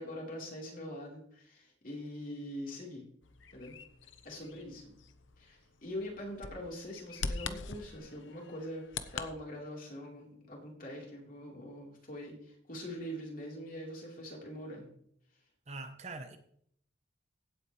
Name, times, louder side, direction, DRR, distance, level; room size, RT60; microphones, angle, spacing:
voice 1, 0.0-3.1 3.5-3.8 4.2-5.0 5.4-14.9, equal, 45° left, 3.8 m, -43 dB
Bird vocalization bird call bird song, 3.2-9.3, left 4 dB, 90° left, 0.9 m, -43 dB
voice 2, 15.7-16.4, right 3 dB, 35° right, 1.0 m, -43 dB
16.5 x 8.5 x 3.2 m
head